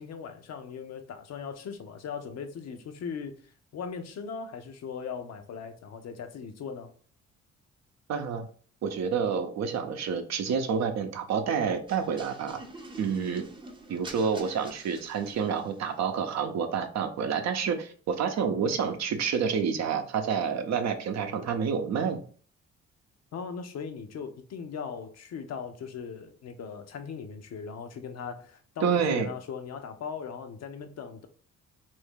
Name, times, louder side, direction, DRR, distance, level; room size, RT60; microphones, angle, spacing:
voice 1, 0.0-3.4 3.7-6.9 23.3-31.3, left 6 dB, 60° left, 0.6 m, -39 dB
voice 2, 8.1-8.4 8.8-12.6 13.0-13.5 13.9-22.2 28.8-29.3, right 6 dB, 65° right, 0.6 m, -28 dB
sound 1, 11.9-15.8, right 2 dB, 15° right, 0.6 m, -46 dB
2.7 x 2.7 x 3.5 m
cardioid pair, 90°, 30 cm